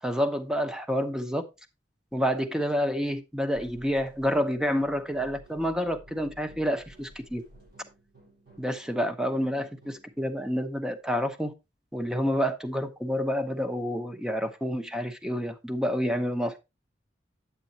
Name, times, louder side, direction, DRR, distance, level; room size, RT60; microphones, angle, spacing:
voice 1, 0.0-1.5 2.1-7.4 8.6-11.5 11.9-16.6, equal, 5° right, 0.9 m, -28 dB
sound 1, 3.6-10.2, equal, 65° right, 6.2 m, -54 dB
8.7 x 8.3 x 2.9 m
head